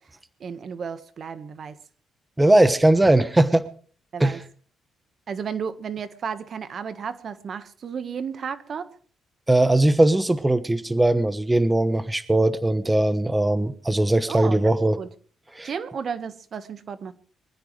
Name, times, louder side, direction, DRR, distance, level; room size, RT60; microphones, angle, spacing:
voice 1, 0.4-1.8 4.1-4.4 5.3-8.9 14.3-15.1 15.6-17.1, right 6 dB, 50° right, 12 dB, 1.4 m, -33 dB
voice 2, 2.4-3.7 4.2-4.4 9.5-15.0 15.5-15.7, right 1 dB, 15° right, 12 dB, 1.1 m, -19 dB
23.5 x 15.5 x 3.3 m, 0.43 s
cardioid pair, 90°, 0 cm